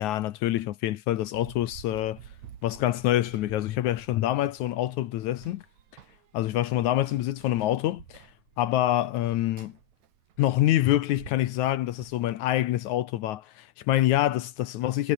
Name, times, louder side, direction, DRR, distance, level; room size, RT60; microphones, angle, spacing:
voice 1, 0.0-2.2 2.6-5.6 6.3-8.3 8.6-9.8 10.4-15.1, left 14 dB, 70° left, 2.0 m, -26 dB
Run, 1.3-12.7, right 9 dB, 60° right, 2.9 m, -51 dB
omnidirectional pair, 4.0 m